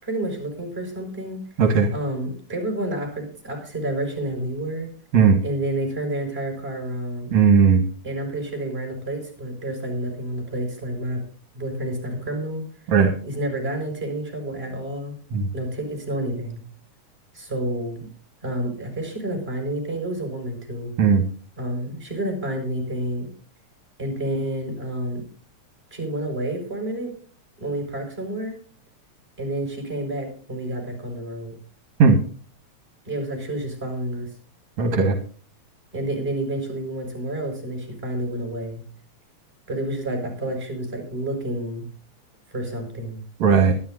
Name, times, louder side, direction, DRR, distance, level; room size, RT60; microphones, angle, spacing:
voice 1, 0.0-1.4 1.9-4.9 5.4-7.3 8.0-11.2 11.5-12.6 13.2-15.2 15.5-16.6 17.3-18.1 18.4-20.9 21.6-23.3 24.0-25.2 25.9-27.1 27.6-28.6 29.4-31.6 33.0-34.3 35.9-38.8 39.7-41.9 42.5-43.2, right 1 dB, 20° right, 2 dB, 5.9 m, -29 dB
voice 2, 1.6-1.9 5.1-5.4 7.3-7.8 12.9-13.1 15.3-15.5 21.0-21.2 32.0-32.2 34.8-35.2 43.4-43.7, right 5 dB, 70° right, 5 dB, 2.8 m, -16 dB
23.5 x 11.5 x 2.6 m, 0.40 s
omnidirectional pair, 3.4 m